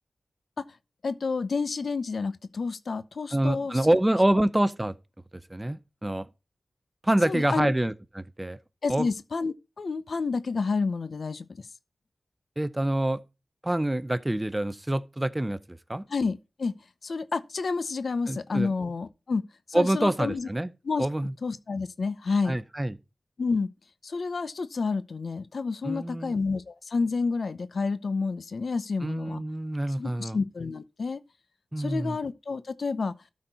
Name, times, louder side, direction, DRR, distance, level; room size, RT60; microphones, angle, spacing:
voice 1, 1.0-3.9 7.3-7.7 8.8-11.6 16.1-16.8 17.0-20.5 20.8-21.1 21.4-22.6 23.4-23.7 24.0-29.4 30.0-31.2 31.8-33.1, left 4 dB, 70° left, 0.6 m, -29 dB
voice 2, 3.3-4.9 5.5-6.3 7.0-8.6 8.9-9.1 12.6-13.2 13.6-16.0 18.3-18.7 19.7-20.7 21.0-21.3 22.5-23.0 25.8-26.3 29.0-30.4 31.7-32.2, right 1 dB, 15° right, 0.6 m, -26 dB
12.5 x 4.3 x 4.4 m
wide cardioid pair, 65°, 0 cm